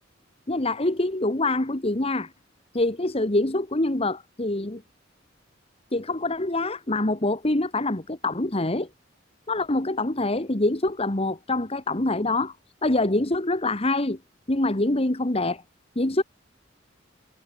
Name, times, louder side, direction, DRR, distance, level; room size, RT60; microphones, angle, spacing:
voice 1, 0.5-2.3 2.7-4.8 5.9-8.9 9.5-12.5 12.8-14.2 14.5-15.6 15.9-16.2, left 2 dB, 30° left, 1.6 m, -25 dB
head